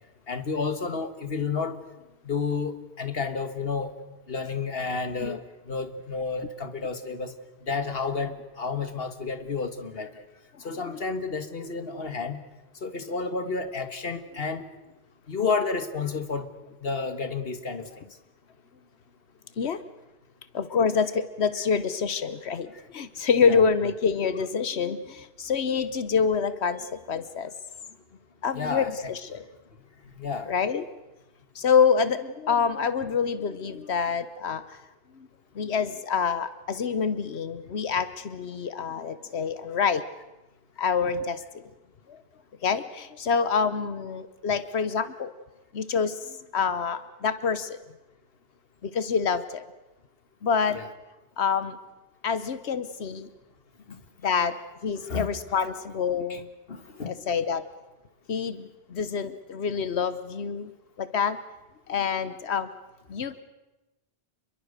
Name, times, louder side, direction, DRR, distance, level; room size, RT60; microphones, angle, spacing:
voice 1, 0.3-1.8 2.2-3.9 4.3-7.3 7.6-10.1 10.6-12.4 12.8-14.7 15.3-16.5 16.8-17.9 23.4-23.6 28.5-28.9 30.1-30.5 50.7-50.8 53.9-54.0 55.1-55.3 56.3-56.4 56.7-57.1, left 4 dB, 65° left, 10 dB, 1.8 m, -31 dB
voice 2, 20.5-27.5 28.4-29.4 30.5-30.8 31.5-34.8 35.1-35.3 35.5-40.0 40.8-41.6 42.1-42.2 42.6-45.3 45.7-47.8 48.8-49.6 50.4-50.8 51.4-51.8 52.2-53.3 54.2-54.6 54.8-56.5 57.0-57.6 58.3-60.7 61.0-61.4 61.9-62.7 63.1-63.4, left 6 dB, 80° left, 14 dB, 1.2 m, -27 dB
27.5 x 22.5 x 6.6 m, 1.1 s
omnidirectional pair, 1.1 m